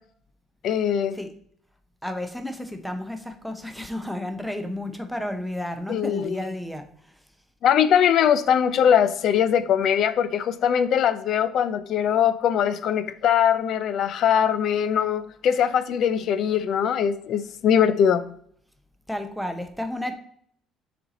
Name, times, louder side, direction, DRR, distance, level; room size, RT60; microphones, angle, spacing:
voice 1, 0.6-1.2 5.9-6.4 7.6-18.3, left 8 dB, 50° left, 14 dB, 0.5 m, -21 dB
voice 2, 2.0-6.9 19.1-20.1, left 1 dB, ahead, 6 dB, 0.7 m, -32 dB
6.5 x 4.3 x 4.0 m, 0.64 s
cardioid pair, 165°, 0 cm